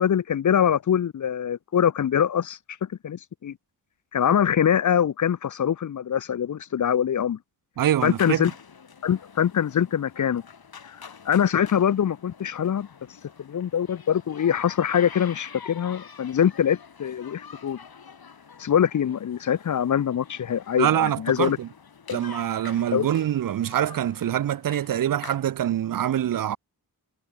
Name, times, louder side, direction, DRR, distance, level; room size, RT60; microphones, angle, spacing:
voice 1, 0.0-3.6 4.1-7.4 8.0-8.5 9.0-10.4 10.8-11.0 11.3-12.9 13.4-17.8 18.6-21.6 22.1-22.2 22.9-23.1, left 9 dB, 50° left, 0.6 m, -23 dB
voice 2, 7.8-8.5 20.8-21.7 22.1-26.6, right 11 dB, 60° right, 0.5 m, -25 dB
sound 1, 8.0-25.4, left 6 dB, 65° left, 7.7 m, -46 dB
wide cardioid pair, 145°, 39 cm